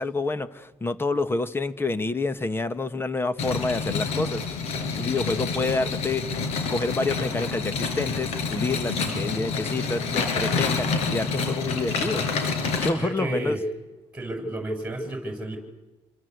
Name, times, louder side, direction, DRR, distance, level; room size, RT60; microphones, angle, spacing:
voice 1, 0.0-4.4 5.0-6.2 6.7-12.2 12.8-13.6, left 3 dB, 20° left, 13 dB, 1.6 m, -28 dB
sound 1, 3.4-12.9, left 4 dB, 85° left, 5.2 m, -28 dB
voice 2, 9.0-9.4 13.0-13.6 14.1-15.6, right 1 dB, 10° right, 4 dB, 7.3 m, -32 dB
27.5 x 24.5 x 8.2 m, 1.1 s
cardioid pair, 110°, 11 cm